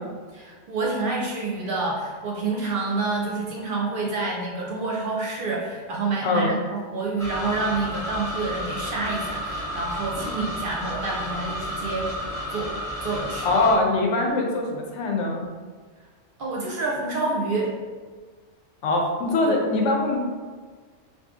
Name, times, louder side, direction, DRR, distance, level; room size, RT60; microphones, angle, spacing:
voice 1, 0.3-12.2 12.5-13.5 16.4-17.7 19.5-19.6, right 3 dB, 60° right, -3 dB, 0.6 m, -28 dB
voice 2, 6.2-6.5 13.4-15.5 18.8-20.3, left 2 dB, 80° left, 1 dB, 0.9 m, -22 dB
sound 1, 7.2-13.8, equal, 5° left, 0.7 m, -32 dB
2.8 x 2.7 x 3.5 m, 1.5 s
omnidirectional pair, 1.2 m